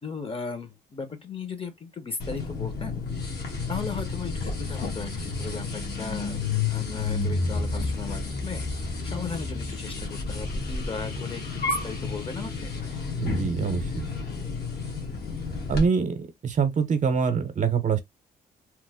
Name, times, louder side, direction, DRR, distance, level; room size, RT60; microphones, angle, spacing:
voice 1, 0.0-3.0 3.7-8.6 9.0-12.7, left 5 dB, 35° left, 0.8 m, -37 dB
sound 1, 2.2-15.8, left 3 dB, 70° left, 1.2 m, -31 dB
voice 2, 13.2-14.1 15.7-16.2 16.4-18.0, right 6 dB, 45° right, 0.7 m, -24 dB
3.0 x 2.0 x 3.5 m
cardioid pair, 85°, 17 cm